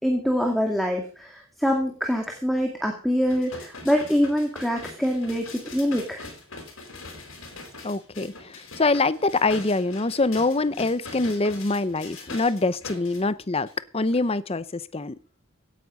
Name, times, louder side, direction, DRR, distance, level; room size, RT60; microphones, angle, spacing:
voice 1, 0.0-6.3, equal, ahead, 2 dB, 2.1 m, -25 dB
sound 1, 3.3-13.2 13.7-13.8, left 3 dB, 65° left, 4.4 m, -42 dB
voice 2, 7.8-13.7 13.9-15.2, left 3 dB, 25° left, 16 dB, 0.7 m, -24 dB
17.0 x 9.4 x 5.3 m, 0.39 s
head